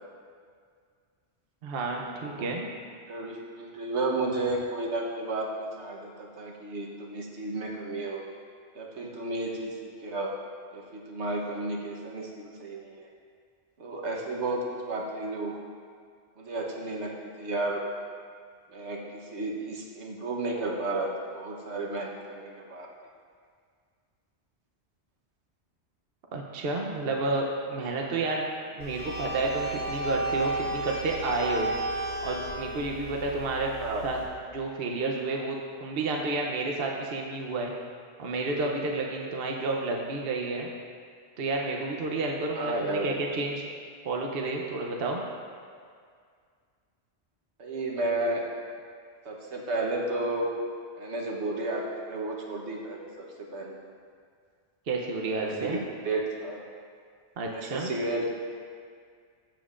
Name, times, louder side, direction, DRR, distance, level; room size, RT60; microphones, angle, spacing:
voice 1, 1.6-2.7 26.3-28.5 28.8-31.7 32.2-33.7 34.0-34.2 34.5-37.7 38.2-40.7 41.4-43.6 44.0-45.2 54.9-55.8 57.4-57.9, right 3 dB, 60° right, 0 dB, 0.9 m, -30 dB
voice 2, 3.1-8.2 8.7-9.8 10.0-10.4 10.7-13.1 13.8-15.5 16.4-17.8 18.7-22.9 27.8-27.9 33.8-34.2 42.6-43.1 47.6-48.5 49.2-50.5 51.0-53.8 55.4-56.6 57.4-58.4, right 2 dB, 85° right, -1 dB, 1.4 m, -32 dB
sound 1, 28.8-34.2, right 2 dB, 55° left, 3.0 m, -33 dB
Bowed string instrument, 29.4-33.5, right 1 dB, 35° right, 0.6 m, -42 dB
14.5 x 7.2 x 2.5 m, 2.1 s
omnidirectional pair, 1.1 m